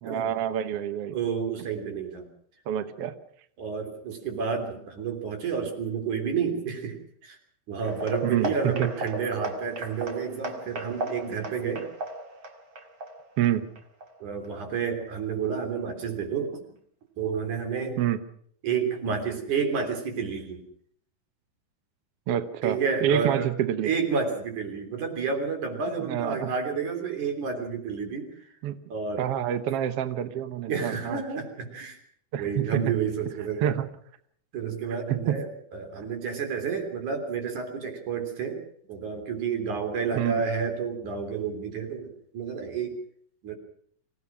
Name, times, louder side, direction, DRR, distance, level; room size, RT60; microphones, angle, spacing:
voice 1, 0.0-1.2 2.7-3.1 8.2-8.9 13.4-13.7 18.0-18.2 22.3-23.9 26.0-26.5 28.6-28.8 29.2-31.2 32.3-32.8 33.6-33.9 35.1-35.4 40.1-40.4, right 10 dB, 70° right, 11 dB, 1.4 m, -27 dB
voice 2, 1.1-2.3 3.6-7.4 7.7-11.9 14.2-16.6 17.2-18.0 18.6-20.6 22.6-23.5 23.8-28.5 28.9-29.3 30.7-32.0 32.4-33.8 34.5-38.6 38.9-43.0 43.4-43.6, right 6 dB, 55° right, 5 dB, 4.7 m, -30 dB
sound 1, 7.8-14.5 14.8-15.0 15.4-15.5 16.0-16.1, right 1 dB, 35° right, 2.6 m, -36 dB
25.5 x 17.0 x 6.2 m, 0.63 s
omnidirectional pair, 4.3 m